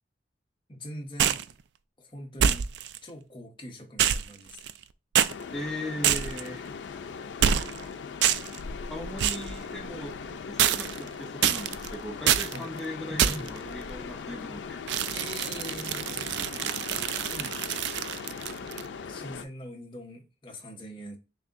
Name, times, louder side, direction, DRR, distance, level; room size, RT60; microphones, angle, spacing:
voice 1, 0.7-1.5 2.0-2.7 3.0-4.6 12.5-12.7 15.1-16.3 17.3-17.6 19.0-21.2, equal, 25° left, 0.9 m, -42 dB
sound 1, 1.2-1.5 2.4-3.0 4.0-4.8 5.1-5.3 6.0-6.5 7.4-7.8 8.2-8.6 9.2-9.5 10.6-11.1 11.4-11.9 12.3-12.6 13.2-13.6 14.9-18.9, right 9 dB, 75° right, 0.3 m, -26 dB
sound 2, 5.3-19.5, left 5 dB, 90° left, 0.4 m, -39 dB
voice 2, 5.5-6.8 8.9-15.0, equal, ahead, 0.5 m, -38 dB
6.3 x 2.7 x 2.5 m
head